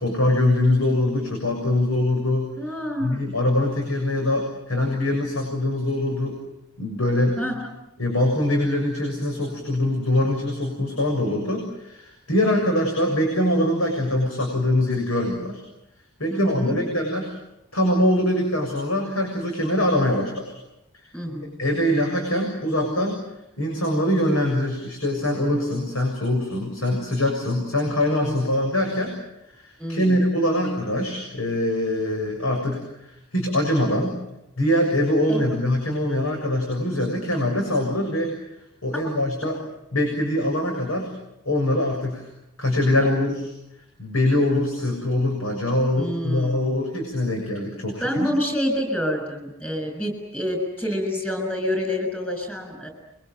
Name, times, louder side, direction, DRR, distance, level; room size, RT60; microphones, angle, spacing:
voice 1, 0.0-2.5 3.0-6.4 6.8-7.4 8.0-15.6 16.2-17.3 17.7-20.5 21.6-23.2 23.6-29.1 29.6-34.1 34.6-38.3 38.8-39.6 39.9-41.1 41.5-42.3 42.6-43.4 44.0-48.3, left 1 dB, 85° left, 1 dB, 7.1 m, -23 dB
voice 2, 2.6-3.2 7.4-7.7 16.3-16.9 21.1-21.5 29.8-30.1 30.6-30.7 35.3-35.4 46.0-46.7 48.0-52.9, equal, 10° left, 4 dB, 6.3 m, -27 dB
29.5 x 24.0 x 7.8 m, 0.87 s
head